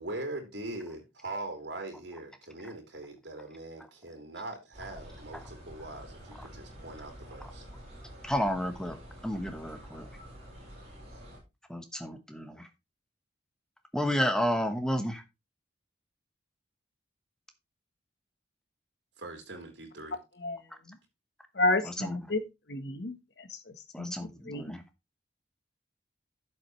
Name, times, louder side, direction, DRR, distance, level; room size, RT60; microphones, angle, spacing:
voice 1, 0.0-7.6 19.2-20.2, right 2 dB, 65° right, 3.4 m, -41 dB
sound 1, 4.7-11.4, equal, 35° right, 6.3 m, -48 dB
voice 2, 8.2-9.0 9.2-10.0 11.7-12.6 13.9-15.2 22.0-22.1 23.9-24.8, equal, 5° left, 1.2 m, -31 dB
voice 3, 21.6-22.4 22.7-24.1 24.5-24.6, left 2 dB, 60° left, 1.2 m, -31 dB
11.5 x 7.4 x 3.2 m
head